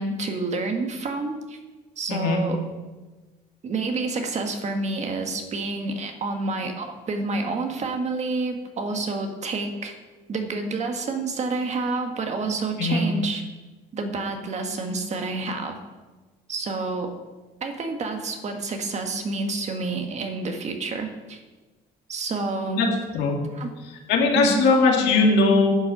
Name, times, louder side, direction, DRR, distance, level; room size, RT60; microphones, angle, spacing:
voice 1, 0.0-1.6 2.0-2.6 3.6-9.9 10.3-13.4 13.9-15.8 16.5-17.1 17.6-21.4 22.1-22.9 23.5-23.7 24.3-24.7, right 3 dB, 40° right, 4 dB, 1.6 m, -28 dB
voice 2, 2.1-2.4 12.8-13.0 22.7-22.9 23.1-23.4 24.1-25.7, left 3 dB, 80° left, 0 dB, 2.4 m, -19 dB
10.5 x 7.3 x 6.0 m, 1.2 s
cardioid pair, 110°, 17 cm